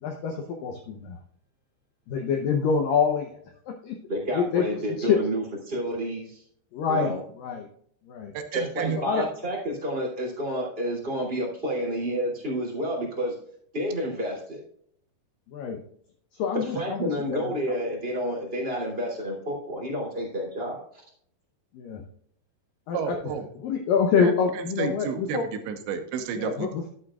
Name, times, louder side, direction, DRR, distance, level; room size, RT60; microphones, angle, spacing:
voice 1, 0.0-1.2 2.1-3.4 3.7-4.0 4.4-4.6 5.0-5.2 6.7-7.7 8.1-8.3 9.0-9.3 15.5-15.8 16.3-17.5 21.7-22.0 22.9-23.2 23.6-25.5 26.4-26.9, left 6 dB, 80° left, 3 dB, 2.0 m, -26 dB
voice 2, 4.1-6.4 6.9-7.2 8.5-13.4 13.7-14.6 16.5-21.0, equal, 15° right, -2 dB, 2.3 m, -30 dB
voice 3, 8.3-9.3 22.9-23.5 24.2-26.7, right 7 dB, 80° right, 6 dB, 3.3 m, -31 dB
12.0 x 8.7 x 2.4 m, 0.64 s
omnidirectional pair, 5.2 m